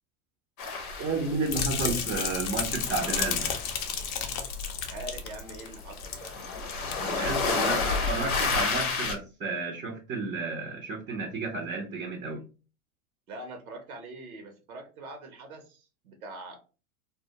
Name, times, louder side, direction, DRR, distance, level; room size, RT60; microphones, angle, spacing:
sound 1, 0.6-2.2 2.5-9.1, left 4 dB, 85° left, 0.7 m, -31 dB
voice 1, 1.0-3.5 7.0-12.4, right 3 dB, 20° right, 0 dB, 0.5 m, -32 dB
sound 2, 1.5-6.3 6.6-6.9 7.4-7.5, left 7 dB, 40° left, 0.5 m, -32 dB
voice 2, 4.9-6.3 7.2-7.9 13.3-16.6, right 2 dB, 80° right, 4 dB, 0.8 m, -43 dB
2.2 x 2.1 x 2.7 m, 0.33 s
hypercardioid pair, 95°, 42 cm